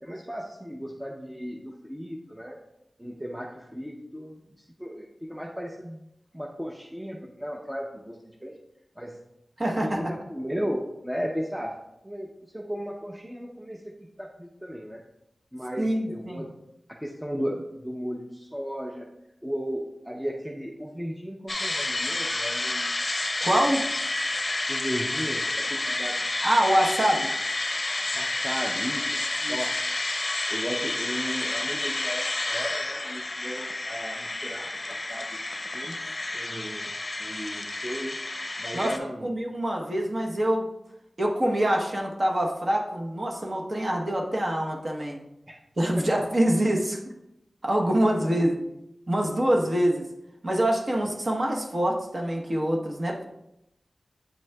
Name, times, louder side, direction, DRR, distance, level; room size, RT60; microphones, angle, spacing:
voice 1, 0.0-2.6 3.0-6.0 6.3-8.6 9.0-9.2 9.6-15.0 15.5-16.5 16.9-19.1 19.4-22.9 24.7-26.3 28.1-29.1 29.5-29.8 30.5-35.4 35.7-36.0 36.3-36.9 37.2-38.2 38.6-39.3 45.5-45.6 46.0-46.1 48.3-48.4, equal, 10° right, 0 dB, 0.6 m, -35 dB
voice 2, 9.6-10.0 15.8-16.5 23.4-23.8 26.4-27.3 29.4-29.6 38.7-38.9 39.2-40.7 41.2-45.2 45.8-47.0 47.6-48.6 49.1-50.0 50.4-53.3, right 1 dB, 45° right, 0 dB, 1.0 m, -25 dB
sound 1, 21.5-39.0, left 2 dB, 40° left, 0.6 m, -30 dB
8.4 x 6.0 x 2.3 m, 0.86 s
wide cardioid pair, 70°, 0 cm